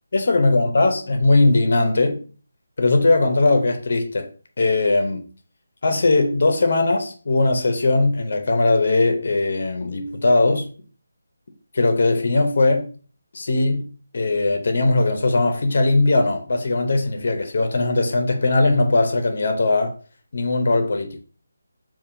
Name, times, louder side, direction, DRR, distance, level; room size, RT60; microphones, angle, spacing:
voice 1, 0.1-2.2 2.8-4.3 4.6-5.2 5.8-10.7 11.7-12.9 13.3-13.9 14.1-19.9 20.3-21.2, left 2 dB, 35° left, 0.6 m, -19 dB
5.3 x 2.5 x 2.5 m
figure-of-eight pair, 180°, 0 cm